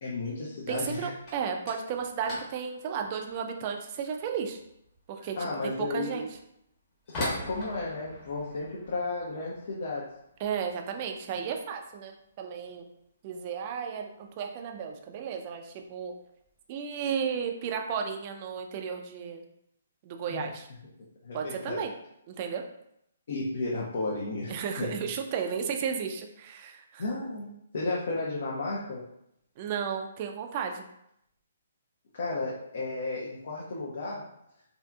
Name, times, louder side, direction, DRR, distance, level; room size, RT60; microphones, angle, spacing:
voice 1, 0.0-1.1 5.4-6.2 7.2-10.1 20.3-20.4 21.2-21.8 23.3-24.9 27.0-29.0 32.1-34.2, left 3 dB, 60° left, -5 dB, 0.6 m, -33 dB
voice 2, 0.7-4.6 5.1-6.3 10.4-12.9 13.2-16.1 16.7-19.4 20.0-20.7 21.3-21.9 22.3-22.6 24.5-27.0 29.6-30.8, right 7 dB, 35° right, 4 dB, 0.3 m, -34 dB
sound 1, 1.1-11.9 12.2-12.8 13.0-13.4 13.7-13.8 14.5-14.6 15.5-15.7 16.0-16.5, left 1 dB, 30° left, 1.1 m, -43 dB
2.6 x 2.4 x 2.2 m, 0.77 s
hypercardioid pair, 140°, 0 cm